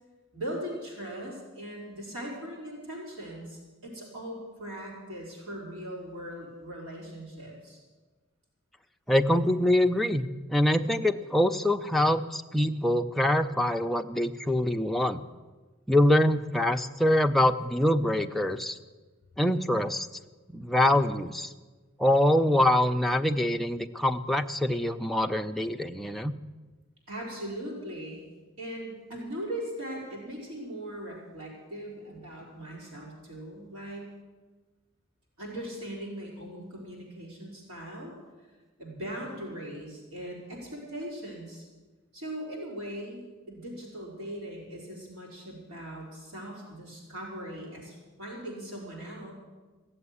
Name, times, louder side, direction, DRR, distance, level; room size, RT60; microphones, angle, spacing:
voice 1, 0.3-7.8 27.1-28.2 28.6-34.1 35.4-38.1 38.8-41.7 42.1-43.2 43.5-49.3, right 1 dB, 75° right, -3 dB, 4.3 m, -39 dB
voice 2, 9.1-15.2 15.9-18.8 19.4-20.1 20.5-21.5 22.0-26.3, left 1 dB, ahead, 4 dB, 0.5 m, -24 dB
15.5 x 7.8 x 9.7 m, 1.3 s
head